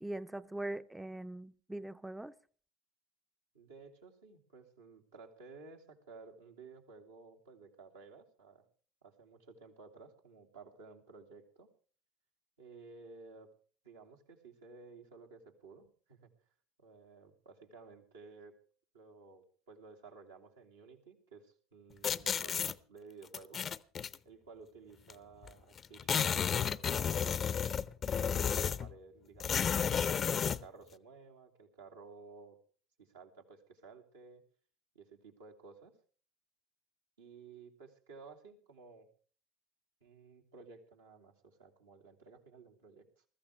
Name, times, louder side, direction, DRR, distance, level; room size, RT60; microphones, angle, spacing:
voice 1, 0.0-2.3, right 1 dB, 5° right, 0.6 m, -41 dB
voice 2, 3.5-8.6 9.0-11.7 12.6-13.5 13.8-16.3 16.8-18.6 18.9-23.6 24.2-26.3 26.6-27.4 28.0-32.6 33.0-34.4 34.9-35.9 37.2-39.1 40.0-43.1, right 4 dB, 80° right, 2.7 m, -55 dB
sound 1, 22.0-22.7 23.3-24.2 25.1-25.2 25.4-25.5 25.8-28.9 29.4-30.6, left 7 dB, 35° left, 0.6 m, -32 dB
21.0 x 14.0 x 3.4 m
figure-of-eight pair, 70°, 0 cm